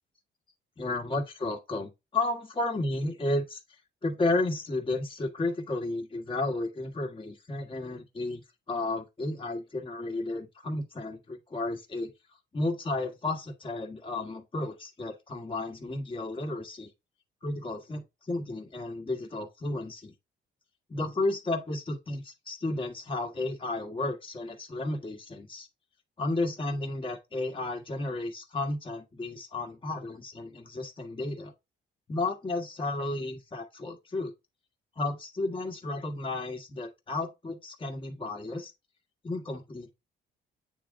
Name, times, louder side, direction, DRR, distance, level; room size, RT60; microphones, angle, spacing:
voice 1, 0.8-3.6 4.0-12.1 12.5-16.9 17.4-20.1 20.9-25.7 26.2-31.5 32.1-34.3 35.0-38.7 39.2-39.9, left 2 dB, 25° left, 1.5 m, -33 dB
8.5 x 3.4 x 3.7 m
cardioid pair, 90°, 20 cm